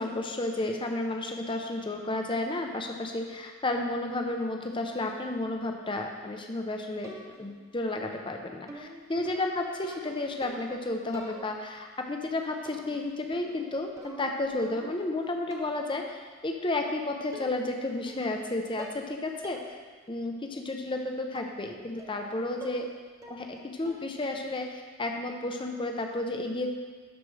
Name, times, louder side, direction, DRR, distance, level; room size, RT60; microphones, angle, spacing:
voice 1, 0.0-19.8 20.1-22.9 23.3-26.7, left 2 dB, 25° left, 3 dB, 0.6 m, -32 dB
sound 1, 7.0-7.6 8.7-10.8 11.1-11.8 12.7-13.1 13.3-15.1 15.5-15.9 16.8-16.9 17.3-17.8 18.1-18.5 18.8-19.1 19.4-19.7 20.1-20.2 21.4-21.6 22.0-22.3 22.6-22.9 23.2-23.6 23.9-24.2, right 1 dB, 15° right, 0.7 m, -46 dB
12.0 x 5.1 x 3.3 m, 1.5 s
head